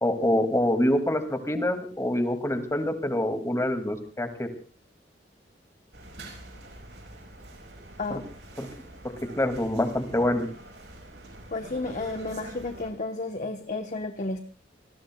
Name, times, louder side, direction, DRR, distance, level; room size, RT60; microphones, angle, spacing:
voice 1, 0.0-4.5 8.6-8.7 9.4-10.5, left 1 dB, 15° left, 6 dB, 2.3 m, -25 dB
sound 1, 5.9-12.9, right 1 dB, 80° right, 5.2 m, -45 dB
voice 2, 11.5-14.4, left 2 dB, 45° left, 5 dB, 1.1 m, -32 dB
28.0 x 20.0 x 2.3 m, 0.38 s
head